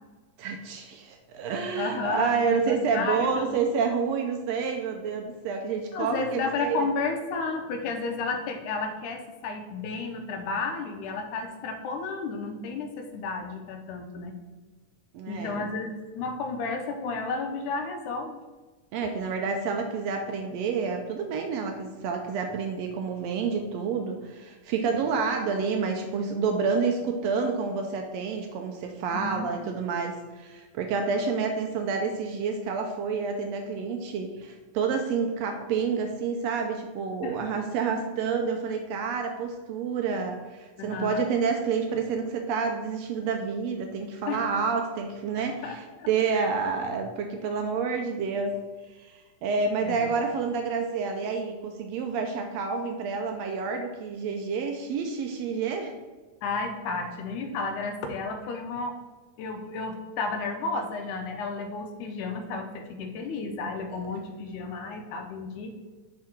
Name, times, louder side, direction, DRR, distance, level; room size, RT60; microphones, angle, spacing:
voice 1, 0.4-6.9 15.1-15.7 18.9-48.6 48.9-55.9 63.9-64.0, right 5 dB, 85° right, 4 dB, 1.5 m, -29 dB
voice 2, 1.8-3.6 5.9-14.3 15.3-18.4 29.1-29.5 37.2-37.4 40.8-41.2 44.3-44.4 45.4-46.1 46.3-46.5 49.8-50.1 56.4-59.0 59.4-65.7, left 4 dB, 80° left, 5 dB, 2.1 m, -32 dB
9.4 x 3.7 x 4.4 m, 1.3 s
omnidirectional pair, 3.7 m